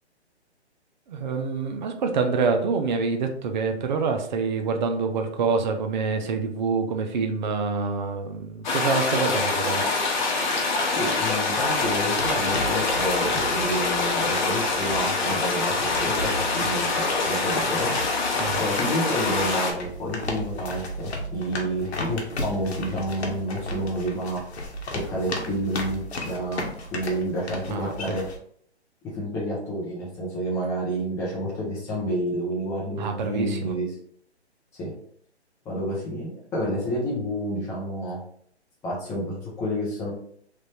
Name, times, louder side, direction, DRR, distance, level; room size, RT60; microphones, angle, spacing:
voice 1, 1.1-9.8 18.4-18.6 27.7-28.2 33.0-33.7, right 4 dB, 45° right, 5 dB, 0.5 m, -26 dB
sound 1, 8.6-19.7, left 3 dB, 45° left, 0.8 m, -25 dB
voice 2, 11.0-16.9 17.2-17.9 18.6-24.4 24.9-28.2 29.1-33.9 34.8-34.9 35.6-38.2 38.8-40.1, equal, 10° left, -5 dB, 0.6 m, -29 dB
sound 2, 11.6-28.4, left 1 dB, 70° left, 0.9 m, -35 dB
3.3 x 2.5 x 3.2 m, 0.63 s
hypercardioid pair, 145°, 34 cm